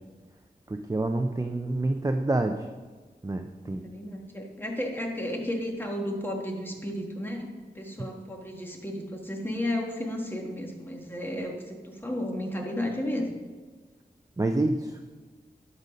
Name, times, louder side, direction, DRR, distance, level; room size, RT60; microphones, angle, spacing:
voice 1, 0.7-2.6 3.2-3.8 14.4-15.1, right 2 dB, 20° right, 5 dB, 0.5 m, -27 dB
voice 2, 3.6-13.3, left 1 dB, 10° left, 0 dB, 1.6 m, -33 dB
11.5 x 4.1 x 5.1 m, 1.3 s
wide cardioid pair, 65°, 17 cm